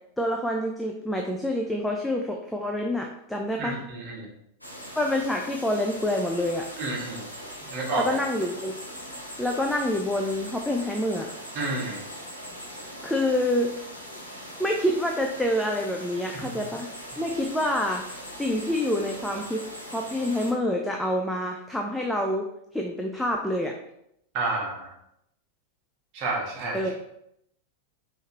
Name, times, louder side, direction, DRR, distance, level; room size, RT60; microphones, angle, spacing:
voice 1, 0.2-3.8 5.0-6.6 8.0-8.7 9.4-11.3 13.0-13.7 14.6-16.9 17.2-18.0 18.4-19.6 19.9-22.4 22.7-23.7 26.7-26.9, left 1 dB, 5° left, 1 dB, 0.5 m, -27 dB
voice 2, 3.6-4.3 6.8-7.3 7.6-8.1 11.5-12.0 16.3-16.4 24.3-24.9 26.1-26.8, right 2 dB, 40° right, -2 dB, 1.6 m, -30 dB
sound 1, 4.6-20.5, equal, 85° left, 1.2 m, -40 dB
5.5 x 3.2 x 2.9 m, 0.78 s
figure-of-eight pair, 90°, 0 cm